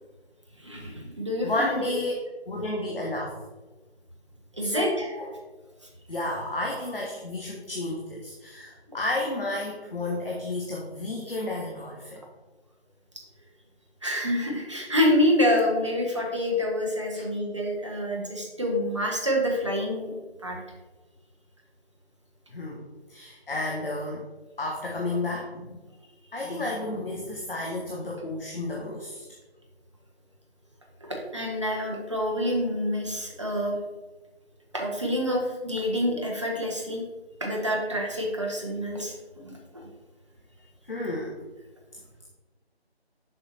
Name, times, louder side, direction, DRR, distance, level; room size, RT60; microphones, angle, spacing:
voice 1, 0.6-1.9 4.6-5.1 14.0-20.1 20.4-20.6 31.0-33.8 34.7-37.0 37.4-39.9, left 1 dB, 30° right, -1 dB, 0.9 m, -27 dB
voice 2, 1.4-2.1 2.5-3.4 4.6-4.9 5.1-5.3 6.1-12.2 17.1-17.2 22.5-22.8 23.1-24.3 24.6-25.8 26.3-29.2 40.9-41.4, left 2 dB, 55° left, -2 dB, 1.1 m, -31 dB
6.8 x 5.6 x 2.7 m, 1.2 s
figure-of-eight pair, 160°, 33 cm